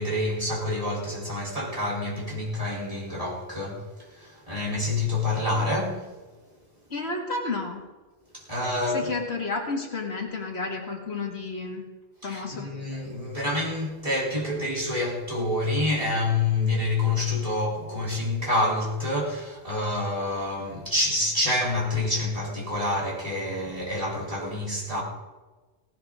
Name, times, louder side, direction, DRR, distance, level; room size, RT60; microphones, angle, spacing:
voice 1, 0.0-6.1 8.3-9.1 12.2-25.0, left 2 dB, 30° right, 3.9 m, -27 dB
voice 2, 6.9-7.8 8.9-11.8 12.2-12.7, left 3 dB, 65° left, 2.3 m, -31 dB
17.5 x 17.0 x 3.7 m
omnidirectional pair, 1.2 m